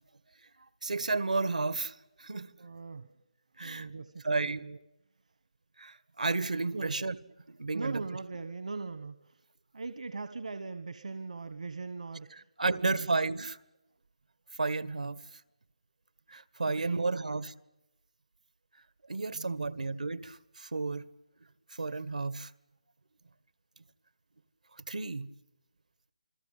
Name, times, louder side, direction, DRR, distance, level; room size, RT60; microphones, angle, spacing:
voice 1, 0.8-2.5 3.6-3.9 4.2-4.6 5.8-7.2 7.5-8.0 12.6-13.6 14.6-15.2 16.3-17.5 19.1-21.1 21.7-22.5 24.9-25.3, right 3 dB, 90° right, 1.8 m, -32 dB
voice 2, 2.6-3.1 3.6-4.8 6.7-6.9 7.7-9.4 9.7-12.3 12.7-13.4 16.7-17.4 19.3-19.8, right 4 dB, 65° right, 1.3 m, -40 dB
28.5 x 21.5 x 8.5 m
hypercardioid pair, 175°, 4 cm